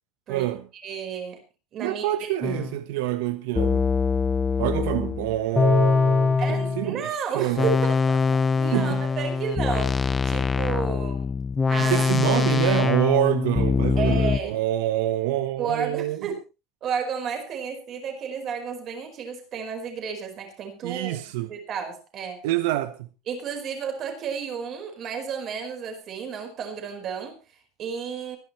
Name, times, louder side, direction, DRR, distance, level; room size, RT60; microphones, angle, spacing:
voice 1, 0.3-0.6 1.8-3.9 4.6-7.1 7.3-7.8 8.7-9.0 11.8-16.3 20.8-21.5 22.4-23.1, right 14 dB, 85° right, 1.1 m, -26 dB
voice 2, 0.8-1.4 1.7-2.1 6.4-8.2 8.6-11.3 11.7-12.1 14.0-14.6 15.6-16.4 16.8-21.2 21.4-22.5 23.3-28.4, right 6 dB, 30° right, 4.7 m, -32 dB
sound 1, 2.4-2.7 3.6-6.9 7.6-14.4, left 5 dB, 15° left, 0.8 m, -23 dB
24.0 x 11.0 x 3.2 m
cardioid pair, 175°, 0 cm